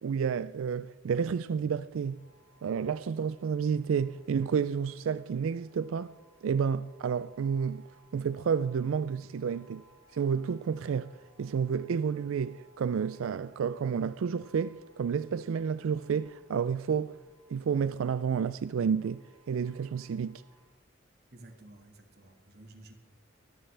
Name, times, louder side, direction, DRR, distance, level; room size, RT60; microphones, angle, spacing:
voice 1, 0.0-2.2 2.6-6.1 6.4-7.8 8.1-9.8 10.1-11.1 11.4-17.2 17.5-20.4, right 6 dB, 90° right, 0.4 m, -30 dB
sound 1, 1.9-20.7, right 2 dB, 30° left, 5.7 m, -64 dB
voice 2, 21.3-22.9, right 2 dB, 50° right, 1.9 m, -53 dB
23.5 x 14.0 x 3.3 m
head